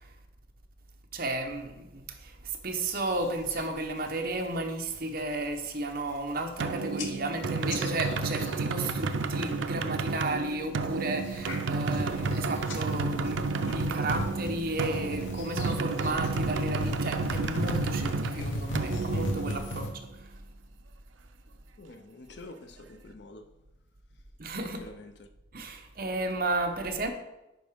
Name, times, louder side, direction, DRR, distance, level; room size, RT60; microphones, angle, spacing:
voice 1, 1.1-19.9 24.4-24.8 25.5-27.1, right 2 dB, 50° right, 0.8 m, -33 dB
sound 1, 2.9-3.7 4.1-4.5 4.8-5.2 5.7-5.8 6.0-6.6 7.0-9.5 9.8-10.3 10.8-19.9, left 1 dB, 85° left, 1.0 m, -37 dB
sound 2, 6.6-20.1, right 4 dB, 80° right, 0.5 m, -32 dB
voice 2, 21.8-23.6 24.8-25.3, left 2 dB, 60° left, 0.6 m, -47 dB
10.0 x 4.7 x 3.6 m
head